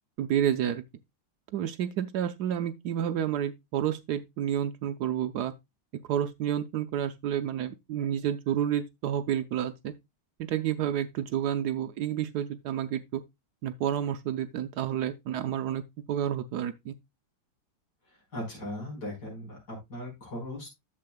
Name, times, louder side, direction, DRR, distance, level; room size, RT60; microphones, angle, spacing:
voice 1, 0.2-0.8 1.5-5.5 6.1-9.9 10.4-13.2 13.6-15.8 16.1-16.9, right 10 dB, 70° right, 1.1 m, -30 dB
voice 2, 18.3-20.8, left 1 dB, 65° left, 5.3 m, -38 dB
11.0 x 7.5 x 2.3 m
omnidirectional pair, 2.0 m